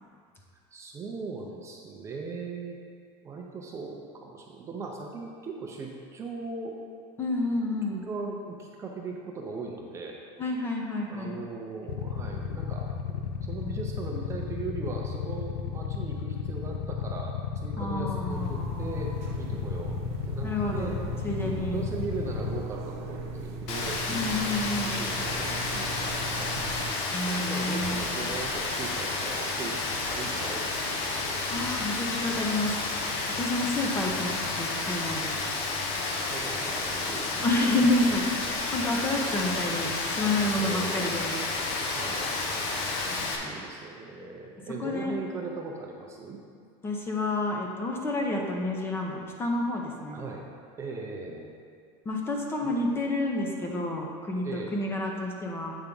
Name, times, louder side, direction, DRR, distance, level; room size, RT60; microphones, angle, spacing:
voice 1, 0.7-2.8 3.2-6.8 7.9-10.2 11.1-20.0 20.3-21.0 21.7-24.0 24.8-26.6 27.2-29.8 30.1-31.5 35.5-35.6 36.1-37.8 40.6-41.1 41.9-42.4 43.4-46.4 50.1-50.5 50.8-51.6 52.6-52.8 54.4-54.8, right 4 dB, 20° right, 0 dB, 0.6 m, -39 dB
voice 2, 7.2-8.0 10.4-11.4 17.8-19.0 20.4-21.8 24.1-25.0 27.1-28.4 31.5-32.7 33.4-35.4 37.4-38.4 38.7-41.4 43.1-43.6 44.8-45.1 46.8-50.2 52.1-55.8, left 2 dB, 15° left, 0 dB, 0.7 m, -29 dB
Motorcycle / Idling, 11.9-22.6, left 7 dB, 85° left, 0.4 m, -33 dB
sound 1, 18.3-26.9, right 2 dB, 85° right, 0.7 m, -38 dB
Rain, 23.7-43.4, left 3 dB, 60° left, 0.9 m, -31 dB
8.2 x 3.5 x 5.2 m, 2.2 s
cardioid pair, 160°, 14 cm